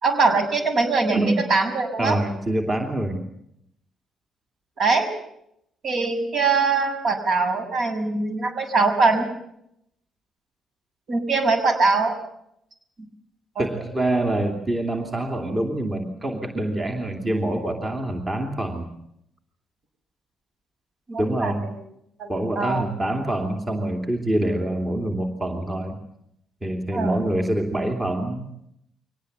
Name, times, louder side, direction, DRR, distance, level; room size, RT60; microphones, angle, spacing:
voice 1, 0.0-1.2 1.5-2.2 4.8-5.1 5.8-9.2 11.1-12.2 13.6-13.7 21.1-21.7 22.2-22.8 26.9-27.2, right 3 dB, 60° right, 7 dB, 6.7 m, -22 dB
voice 2, 1.1-1.5 2.0-3.3 13.6-18.9 21.2-21.7 22.3-26.0 26.6-28.5, right 1 dB, 25° right, 4 dB, 3.0 m, -25 dB
24.0 x 18.5 x 8.2 m, 0.76 s
cardioid pair, 90°, 0 cm